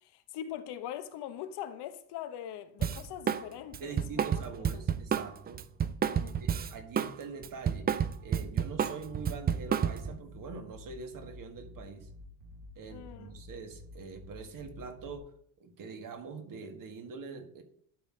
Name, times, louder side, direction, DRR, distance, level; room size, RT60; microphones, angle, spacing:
voice 1, 0.0-4.2 4.6-4.8 6.1-6.4 12.9-13.4, left 10 dB, 70° left, 1.0 m, -42 dB
Drum kit, 2.8-3.4 3.7-7.1 7.4-10.2, right 8 dB, 25° right, 0.3 m, -30 dB
voice 2, 3.8-5.6 6.2-12.1 12.7-15.3 15.6-17.6, right 5 dB, 50° right, 1.7 m, -44 dB
sound 1, 8.3-15.2, left 2 dB, 75° right, 2.0 m, -51 dB
11.5 x 4.2 x 4.9 m
cardioid pair, 120°, 42 cm